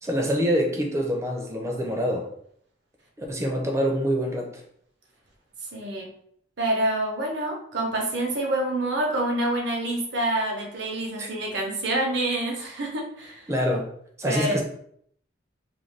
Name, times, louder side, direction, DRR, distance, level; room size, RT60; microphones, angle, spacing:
voice 1, 0.0-2.3 3.2-4.6 11.2-11.3 13.5-13.9 14.2-14.6, equal, 15° right, 1 dB, 0.4 m, -25 dB
voice 2, 5.7-6.1 6.6-13.5 14.3-14.6, right 1 dB, 65° right, 0 dB, 0.7 m, -27 dB
2.5 x 2.2 x 3.2 m, 0.66 s
head